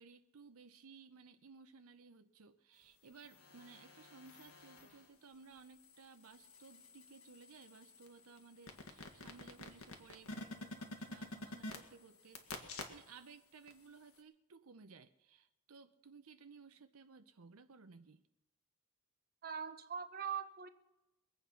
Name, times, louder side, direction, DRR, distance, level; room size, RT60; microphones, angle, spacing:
voice 1, 0.0-18.2, right 5 dB, 70° right, 8 dB, 0.7 m, -59 dB
sound 1, 3.1-5.1 5.6-13.3 13.7-13.8, left 2 dB, 70° left, 1.9 m, -50 dB
voice 2, 19.4-20.7, right 7 dB, 45° right, 9 dB, 0.9 m, -42 dB
22.5 x 8.5 x 5.7 m, 0.98 s
head